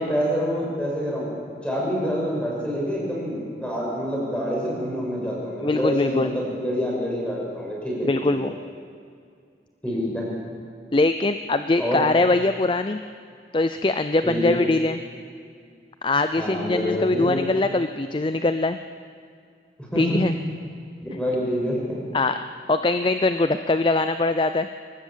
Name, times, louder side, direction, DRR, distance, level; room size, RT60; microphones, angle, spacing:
voice 1, 0.0-1.3 1.6-8.5 9.8-10.3 11.8-12.0 14.2-14.6 16.4-17.5 19.8-20.2 21.2-22.0, equal, 5° left, -4 dB, 6.4 m, -27 dB
voice 2, 5.6-6.3 8.0-8.5 10.9-13.0 13.5-15.0 16.0-18.8 20.0-20.3 22.1-22.4 22.7-24.7, left 2 dB, 30° left, 10 dB, 0.5 m, -22 dB
23.0 x 19.0 x 7.4 m, 2.2 s
head